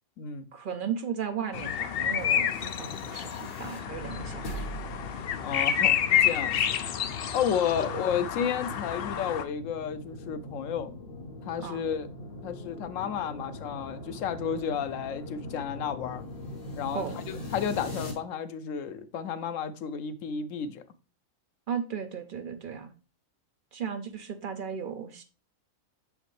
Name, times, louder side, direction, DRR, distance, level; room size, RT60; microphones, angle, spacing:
voice 1, 0.5-4.7 5.1-5.3 7.8-8.0 11.6-11.8 16.9-17.2 21.7-22.9 23.7-25.2, right 7 dB, 50° right, 0.7 m, -36 dB
sound 1, 1.5-9.4, left 9 dB, 60° left, 0.6 m, -29 dB
sound 2, 2.3-18.1, left 1 dB, 45° left, 1.4 m, -42 dB
voice 2, 5.4-6.6 7.3-10.9 11.4-12.1 12.4-16.2 16.8-17.0 17.5-20.8, left 8 dB, 85° left, 1.0 m, -32 dB
6.3 x 5.1 x 3.2 m
omnidirectional pair, 1.3 m